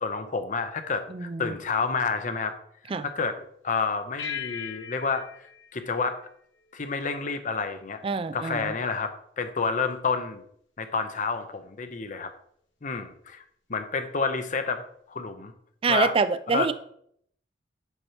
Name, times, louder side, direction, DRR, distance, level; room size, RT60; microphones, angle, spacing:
voice 1, 0.0-2.5 3.0-5.2 5.7-6.2 6.7-8.0 8.3-9.1 9.4-10.4 10.8-12.3 12.8-13.4 13.7-15.5 15.9-16.1 16.5-16.7, left 4 dB, 45° left, 8 dB, 0.7 m, -29 dB
voice 2, 1.1-1.5 2.9-3.1 8.0-8.7 15.8-16.7, right 4 dB, 30° right, 12 dB, 0.4 m, -26 dB
sound 1, 4.2-6.9, left 8 dB, 90° left, 1.0 m, -39 dB
8.0 x 3.0 x 5.6 m, 0.67 s
head